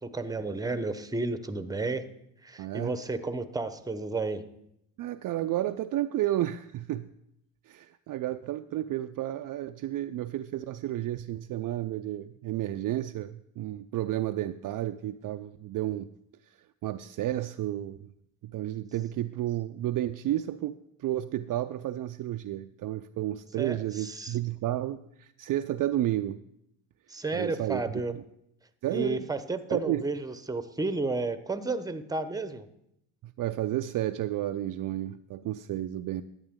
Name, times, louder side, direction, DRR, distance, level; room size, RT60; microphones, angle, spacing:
voice 1, 0.0-2.0 2.4-4.4 23.6-24.4 27.1-28.1 28.9-32.7, right 3 dB, 10° right, 11 dB, 0.8 m, -32 dB
voice 2, 2.6-2.9 5.0-7.1 7.7-16.1 16.8-18.1 18.4-26.4 27.3-27.8 28.1-28.2 28.8-29.3 29.7-30.0 33.2-36.2, right 13 dB, 50° right, 9 dB, 0.4 m, -32 dB
11.0 x 8.6 x 3.6 m, 0.79 s
supercardioid pair, 60°, 44 cm